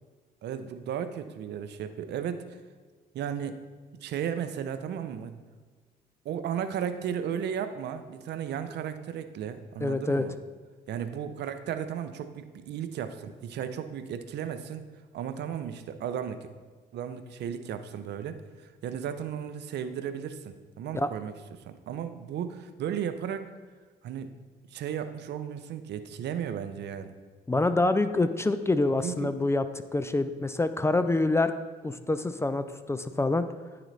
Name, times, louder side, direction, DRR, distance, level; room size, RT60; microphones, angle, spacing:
voice 1, 0.4-2.6 3.1-3.6 4.0-5.3 6.2-10.3 10.9-14.9 15.1-16.5 16.9-23.5 24.0-24.3 24.7-27.1 29.0-29.3, right 8 dB, 70° right, 10 dB, 0.5 m, -35 dB
voice 2, 9.8-10.2 20.9-21.1 27.5-29.6 29.9-31.5 31.8-33.5, left 2 dB, 15° left, 11 dB, 0.3 m, -26 dB
9.9 x 3.9 x 3.2 m, 1.4 s
supercardioid pair, 65°, 18 cm